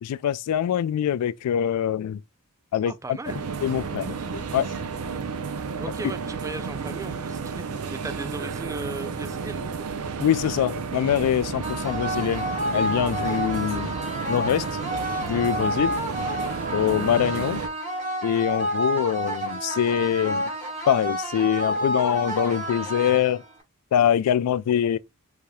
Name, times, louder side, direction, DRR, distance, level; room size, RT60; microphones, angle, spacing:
voice 1, 0.0-2.2 2.7-3.2 3.6-4.7 10.2-13.9 14.3-14.6 15.2-15.9 16.7-17.6 18.2-20.5 20.9-23.4 23.9-25.0, left 9 dB, 90° left, 0.3 m, -24 dB
voice 2, 2.9-3.4 5.8-9.7, right 3 dB, 15° right, 0.3 m, -37 dB
sound 1, 3.2-17.7, right 5 dB, 70° right, 0.5 m, -32 dB
sound 2, 11.6-23.6, equal, 35° right, 1.3 m, -29 dB
4.7 x 2.8 x 2.2 m
head